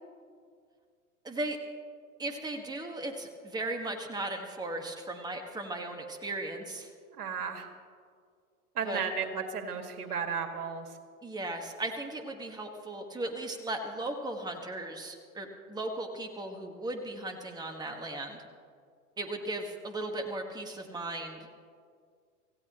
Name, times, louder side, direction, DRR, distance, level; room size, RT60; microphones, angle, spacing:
voice 1, 1.2-1.6 2.2-6.9 8.8-9.0 11.2-18.4 19.2-21.5, right 2 dB, 10° right, 4 dB, 1.5 m, -37 dB
voice 2, 7.2-7.7 8.8-10.9, right 6 dB, 75° right, 5 dB, 2.2 m, -34 dB
26.0 x 16.5 x 3.0 m, 2.1 s
hypercardioid pair, 105°, 46 cm